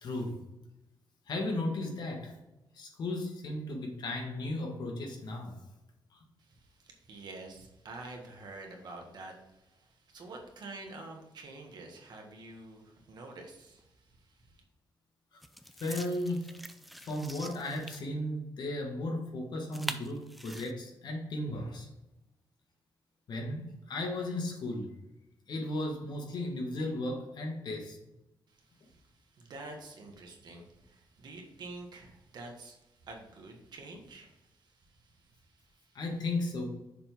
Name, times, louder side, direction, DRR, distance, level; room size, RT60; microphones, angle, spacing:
voice 1, 0.0-0.4 1.3-2.3 2.7-5.5 6.1-6.2 15.8-16.6 17.0-21.9 23.3-24.9 25.5-28.0 35.9-36.7, left 1 dB, 60° left, 1 dB, 1.5 m, -35 dB
voice 2, 6.4-14.6 28.5-36.0, right 2 dB, 60° right, 2 dB, 1.5 m, -48 dB
sound 1, 13.8-13.9 15.4-18.0 19.7-20.7, equal, ahead, 0.4 m, -43 dB
6.7 x 3.7 x 4.5 m, 0.94 s
cardioid pair, 125°, 8 cm